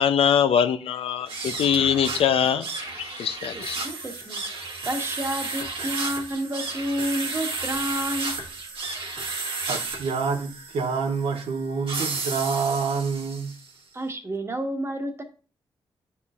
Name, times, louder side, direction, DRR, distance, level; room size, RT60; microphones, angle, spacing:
voice 1, 0.0-2.7 3.0-3.8, left 8 dB, 80° left, 0.6 m, -22 dB
sound 1, 1.2-13.7, right 3 dB, 70° right, 1.4 m, -33 dB
voice 2, 3.5-4.4 4.9-8.4 13.9-15.2, right 1 dB, 30° right, 1.2 m, -30 dB
voice 3, 9.7-13.5, right 5 dB, 85° right, 0.7 m, -27 dB
9.5 x 4.2 x 2.4 m
cardioid pair, 70°, 10 cm